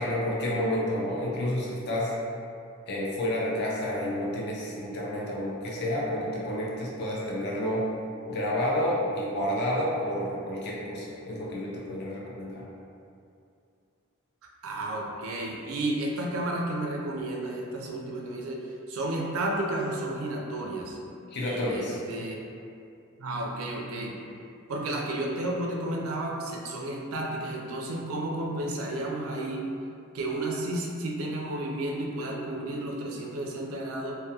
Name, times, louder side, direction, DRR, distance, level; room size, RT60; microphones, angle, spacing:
voice 1, 0.0-2.1 2.9-7.9 8.3-12.6 21.3-22.0, left 1 dB, 50° left, -4 dB, 0.4 m, -30 dB
voice 2, 14.4-18.6 18.9-21.0 21.4-22.4 23.2-24.2 24.7-29.7 30.1-34.2, right 1 dB, 75° right, -1 dB, 0.4 m, -32 dB
2.2 x 2.1 x 2.7 m, 2.5 s
head